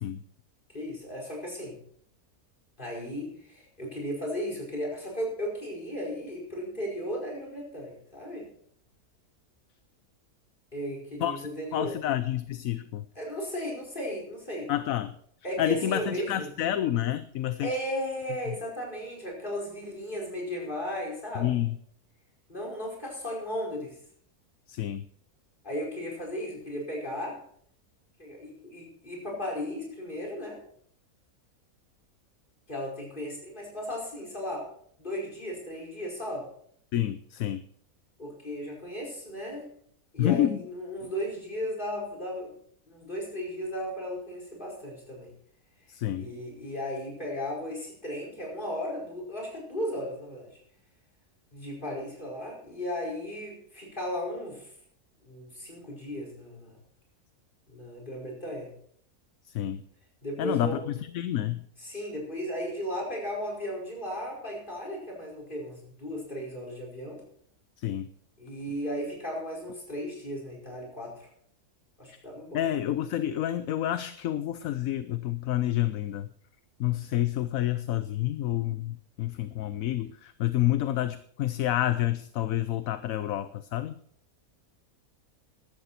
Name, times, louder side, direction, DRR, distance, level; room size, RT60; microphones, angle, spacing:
voice 1, 0.7-1.8 2.8-8.5 10.7-12.0 13.2-14.7 15.4-16.5 17.6-21.5 22.5-23.9 25.6-27.4 28.2-30.6 32.7-34.6 35.0-36.5 38.2-39.7 40.1-42.6 42.9-45.3 46.2-50.5 51.5-54.7 55.2-56.8 57.7-58.7 60.2-60.8 61.8-67.2 68.4-71.3 72.0-72.6, equal, 35° left, -1 dB, 5.3 m, -35 dB
voice 2, 11.2-13.0 14.7-15.1 15.6-17.8 18.5-18.6 21.3-21.8 24.7-25.1 36.9-37.6 40.2-40.6 45.9-46.3 59.5-59.8 60.4-61.6 67.8-68.1 72.1-72.2 72.5-76.3 76.8-84.0, left 13 dB, 70° left, 13 dB, 1.0 m, -29 dB
15.0 x 12.0 x 4.2 m, 0.63 s
omnidirectional pair, 1.6 m